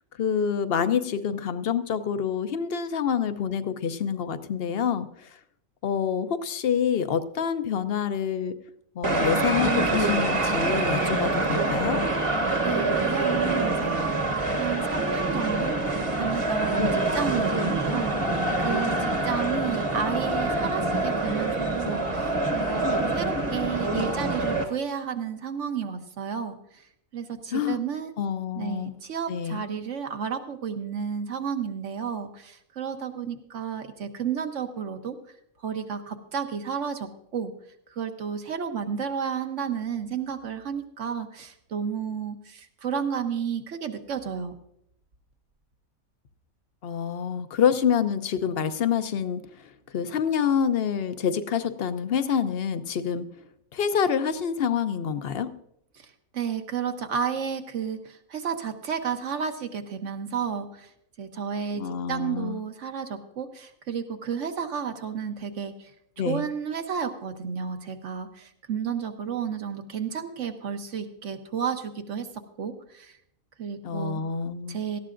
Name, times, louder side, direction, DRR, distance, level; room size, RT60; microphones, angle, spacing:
voice 1, 0.2-5.1 5.8-8.5 9.0-12.0 27.5-27.8 28.2-29.0 29.3-29.6 46.8-49.4 49.9-53.3 53.7-55.5 61.8-62.6 66.2-66.4 73.8-74.8, left 7 dB, 55° left, 11 dB, 0.8 m, -27 dB
ale ale Benfica, 9.0-24.6, right 2 dB, 25° right, 1.0 m, -25 dB
voice 2, 12.6-14.2 14.6-22.8 23.1-26.6 27.1-28.1 28.5-35.2 35.6-37.5 37.9-44.5 56.3-60.9 61.2-61.8 62.1-65.7 66.2-72.3 72.6-73.1 73.6-74.2 74.7-75.0, right 7 dB, 65° right, 6 dB, 1.3 m, -32 dB
17.5 x 13.5 x 2.5 m, 0.73 s
omnidirectional pair, 1.4 m